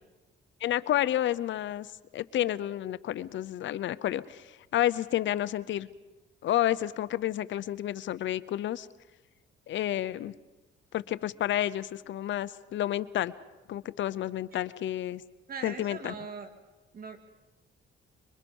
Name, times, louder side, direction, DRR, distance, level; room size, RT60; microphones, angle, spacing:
voice 1, 0.6-1.9 2.1-5.9 6.4-8.9 9.7-10.3 10.9-13.3 13.7-15.2 15.6-16.2, left 12 dB, 70° left, 17 dB, 0.7 m, -30 dB
voice 2, 15.5-16.5 16.9-17.2, right 5 dB, 50° right, 6 dB, 2.8 m, -40 dB
25.5 x 23.5 x 5.4 m, 1.1 s
cardioid pair, 90°, 20 cm